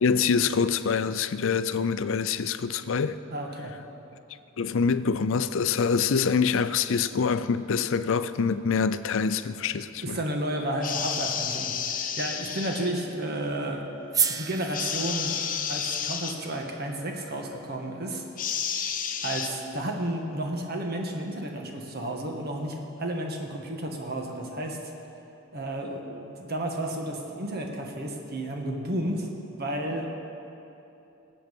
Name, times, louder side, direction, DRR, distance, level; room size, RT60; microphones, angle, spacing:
voice 1, 0.0-3.2 4.6-10.2, left 5 dB, 70° left, 0.5 m, -25 dB
voice 2, 3.3-3.7 10.0-13.9 14.3-15.4 15.7-18.2 19.2-24.8 25.5-29.3 29.6-30.1, right 1 dB, 50° right, 1.6 m, -32 dB
sound 1, 10.8-13.0 14.7-16.4 18.4-19.5, left 7 dB, 40° left, 0.8 m, -31 dB
sound 2, 14.1-18.3, right 6 dB, 15° right, 0.4 m, -34 dB
19.0 x 7.8 x 5.3 m
head